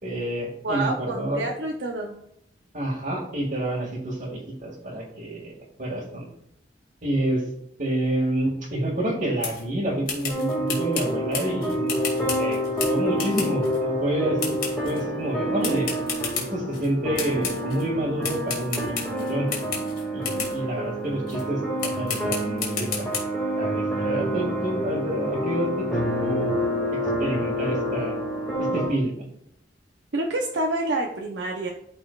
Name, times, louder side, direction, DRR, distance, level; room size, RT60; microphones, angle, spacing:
voice 1, 0.0-1.5 2.7-6.3 7.0-7.4 7.8-15.9 16.4-19.5 20.1-22.9 23.6-26.5 27.2-28.1 28.6-29.1, right 1 dB, 45° right, -7 dB, 1.9 m, -28 dB
voice 2, 0.6-2.2 30.1-31.7, right 2 dB, 75° right, 1 dB, 0.7 m, -27 dB
sound 1, 9.4-9.7 10.1-13.8 14.4-15.0 15.6-16.9 17.2-17.8 18.2-20.6 21.3-21.4 21.8-23.2, left 6 dB, 55° left, 2.0 m, -32 dB
sound 2, 10.3-28.9, equal, 5° left, 2.0 m, -28 dB
12.5 x 4.2 x 2.4 m, 0.75 s
head